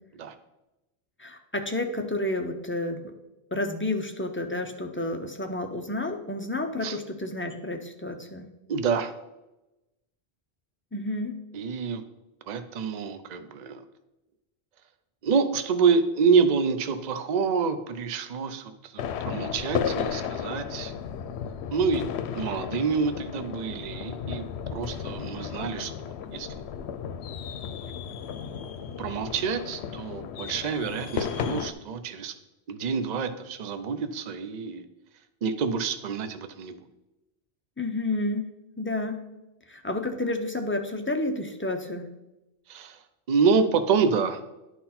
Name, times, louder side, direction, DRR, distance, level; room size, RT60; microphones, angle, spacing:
voice 1, 1.2-3.1 3.5-8.4 10.9-11.3 37.8-38.5 38.8-39.2 39.7-42.1, left 2 dB, 15° left, 4 dB, 0.5 m, -30 dB
voice 2, 8.7-9.1 11.5-12.0 12.5-13.8 15.2-20.9 21.7-22.0 22.4-25.9 26.3-26.5 29.0-32.3 32.7-34.8 35.4-36.8 42.7-43.0 43.3-44.4, right 5 dB, 50° right, 9 dB, 0.6 m, -27 dB
sound 1, 19.0-31.7, left 7 dB, 90° left, 0.8 m, -34 dB
11.0 x 3.9 x 4.2 m, 0.98 s
omnidirectional pair, 1.1 m